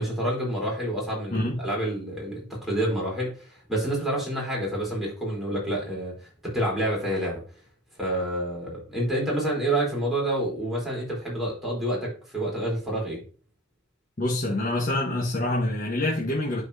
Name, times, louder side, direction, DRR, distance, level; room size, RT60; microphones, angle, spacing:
voice 1, 0.0-6.1 6.4-7.4 8.0-13.2, right 1 dB, ahead, 3.8 m, -28 dB
voice 2, 1.3-1.6 14.2-16.6, left 1 dB, 50° left, 1.3 m, -26 dB
11.5 x 4.6 x 2.8 m
head